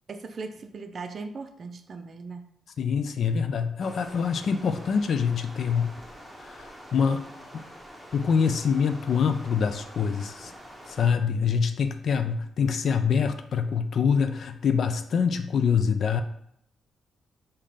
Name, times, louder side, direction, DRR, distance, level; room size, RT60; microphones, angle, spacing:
voice 1, 0.1-2.5, right 4 dB, 50° right, 0.4 m, -38 dB
voice 2, 2.8-5.9 6.4-7.3 7.5-7.7 8.1-10.5 10.9-16.2, left 6 dB, 60° left, 0.4 m, -25 dB
Stream, 3.8-11.1, equal, 5° left, 1.1 m, -46 dB
3.7 x 2.8 x 4.8 m
cardioid pair, 80°, 0 cm